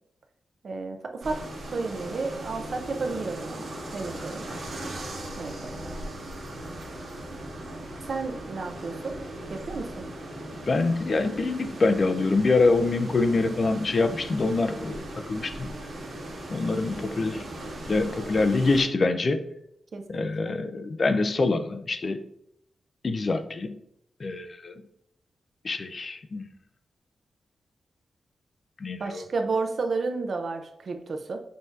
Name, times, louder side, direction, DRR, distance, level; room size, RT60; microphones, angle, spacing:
voice 1, 0.6-1.4 1.7-4.9 5.4-6.0 8.1-9.2 9.5-10.0 19.9-20.5 29.0-31.4, right 3 dB, 50° right, 5 dB, 0.4 m, -32 dB
sound 1, 1.2-18.8, right 1 dB, 80° right, 1.5 m, -38 dB
voice 2, 10.7-15.7 16.5-17.4 17.9-19.4 20.1-22.2 23.0-23.8 24.2-24.7 25.6-26.4 28.8-29.2, left 3 dB, 35° left, 9 dB, 0.3 m, -25 dB
6.1 x 2.6 x 2.4 m, 0.73 s
wide cardioid pair, 165°, 0 cm